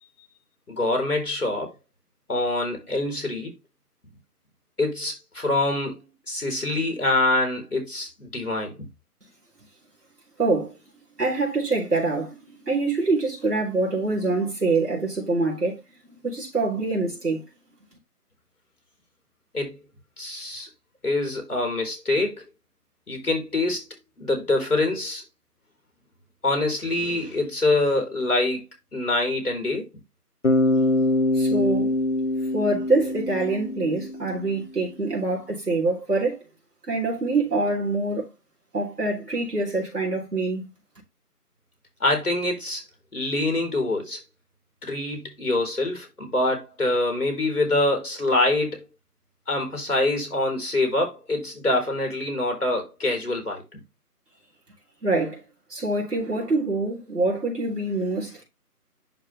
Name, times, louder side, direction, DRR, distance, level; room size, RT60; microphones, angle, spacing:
voice 1, 0.7-1.7 2.3-3.5 4.0-4.1 4.8-8.9 19.5-19.8 20.2-20.7 21.0-22.4 23.1-23.9 24.2-25.2 26.4-28.6 28.9-29.9 42.0-42.8 43.1-44.2 44.8-48.9 49.5-53.6, left 2 dB, 70° left, 4.4 m, -25 dB
voice 2, 10.4-10.8 11.2-15.8 16.2-17.4 31.3-31.9 32.5-36.4 36.9-38.3 38.7-40.7 55.0-55.4 55.7-58.4, right 3 dB, 80° right, 3.8 m, -25 dB
Bass guitar, 30.4-34.5, left 1 dB, 50° left, 0.9 m, -24 dB
11.0 x 3.9 x 3.2 m
figure-of-eight pair, 175°, 47 cm